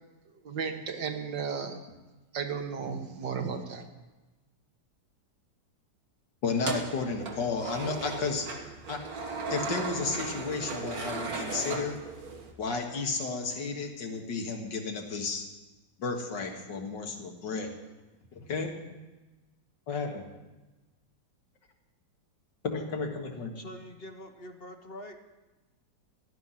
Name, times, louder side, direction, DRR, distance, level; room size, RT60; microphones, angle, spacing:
voice 1, 0.4-1.8 2.3-3.9, right 6 dB, 80° right, 5 dB, 2.0 m, -34 dB
voice 2, 6.4-8.5 8.9-9.0 9.5-12.0 12.6-15.5 16.0-17.7 18.3-18.8 19.9-20.3 22.6-23.5, left 4 dB, 75° left, 3 dB, 2.3 m, -32 dB
sound 1, 6.5-12.5, right 3 dB, 55° right, 1.9 m, -37 dB
voice 3, 23.5-25.2, left 1 dB, 40° left, 5 dB, 1.1 m, -44 dB
15.5 x 11.0 x 5.9 m, 1.2 s
omnidirectional pair, 1.9 m